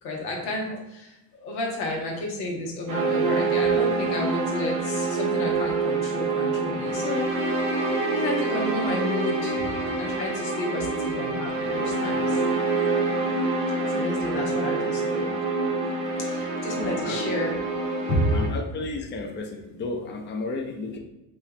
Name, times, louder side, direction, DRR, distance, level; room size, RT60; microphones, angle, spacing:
voice 1, 0.0-9.5 9.9-12.4 13.9-15.3 16.2-17.6 18.1-18.3, left 1 dB, 85° left, -1 dB, 1.1 m, -31 dB
sound 1, 2.9-18.5, right 3 dB, 85° right, 0.9 m, -26 dB
voice 2, 16.8-17.3 18.3-21.0, left 3 dB, 20° left, 2 dB, 0.6 m, -33 dB
4.3 x 2.4 x 3.2 m, 0.98 s
hypercardioid pair, 70°, 50 cm